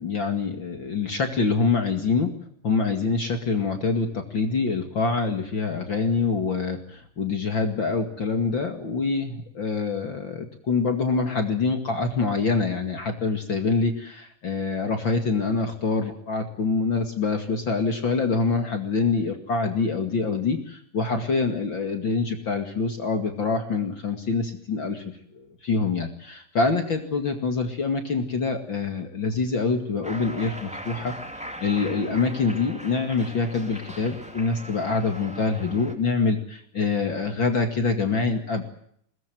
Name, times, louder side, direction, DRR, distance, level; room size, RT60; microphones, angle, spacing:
voice 1, 0.0-2.3 2.6-25.0 25.3-38.6, left 4 dB, 40° left, 6 dB, 2.8 m, -25 dB
Cheering, 30.0-35.9, right 1 dB, ahead, 2.7 m, -40 dB
22.5 x 19.5 x 9.4 m, 0.67 s
omnidirectional pair, 3.4 m